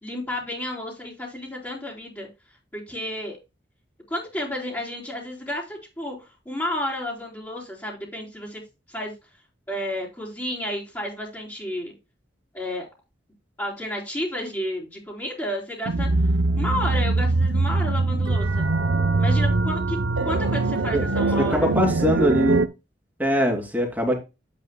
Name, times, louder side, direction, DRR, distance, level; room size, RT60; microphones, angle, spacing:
voice 1, 0.0-2.3 2.7-3.4 4.1-6.2 6.4-8.6 8.9-9.1 9.7-11.9 12.5-12.8 13.6-16.1 16.5-18.7 19.2-20.0 20.2-21.7, left 1 dB, 15° left, -8 dB, 3.2 m, -31 dB
sound 1, 15.9-22.7, right 3 dB, 80° right, 0.7 m, -22 dB
voice 2, 21.4-22.6 23.2-24.2, equal, 10° right, 1 dB, 2.7 m, -22 dB
10.0 x 8.3 x 2.2 m, 0.26 s
head